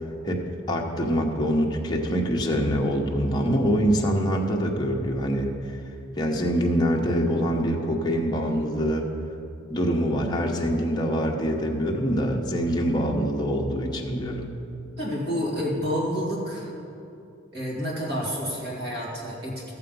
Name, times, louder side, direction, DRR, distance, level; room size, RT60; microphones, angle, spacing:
voice 1, 0.2-5.8 6.2-9.1 9.7-14.5, equal, 20° left, -1 dB, 0.9 m, -25 dB
voice 2, 15.0-16.7 17.5-19.7, equal, 50° right, -4 dB, 2.2 m, -29 dB
15.0 x 6.9 x 5.4 m, 2.7 s
head